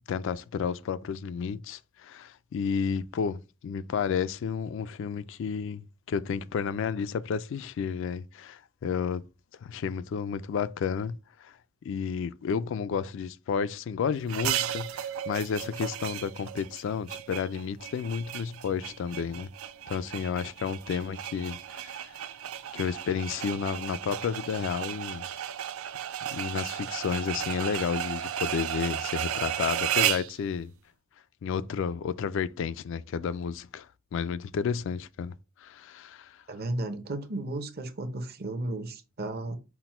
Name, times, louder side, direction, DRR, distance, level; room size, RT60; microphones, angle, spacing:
voice 1, 0.1-5.8 6.1-9.3 9.6-11.6 11.8-19.5 19.9-22.1 22.7-25.2 26.3-30.7 31.4-35.4 35.6-36.4, left 6 dB, 65° left, 0.3 m, -31 dB
sound 1, 14.3-30.3, right 10 dB, 90° right, 0.4 m, -34 dB
voice 2, 36.5-39.6, right 2 dB, 50° right, 0.7 m, -34 dB
5.9 x 2.1 x 4.3 m
head